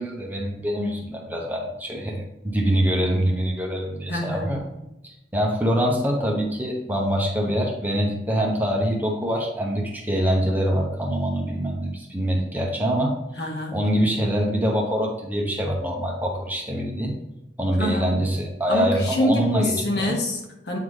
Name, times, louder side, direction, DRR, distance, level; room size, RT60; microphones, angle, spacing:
voice 1, 0.0-4.6 5.0-13.2 13.7-17.2 17.6-20.2, equal, 10° right, 0 dB, 0.8 m, -24 dB
voice 2, 4.1-4.6 13.4-13.8 17.8-18.2 18.7-20.8, left 1 dB, 60° left, 0 dB, 1.3 m, -26 dB
8.3 x 3.9 x 3.2 m, 0.90 s
head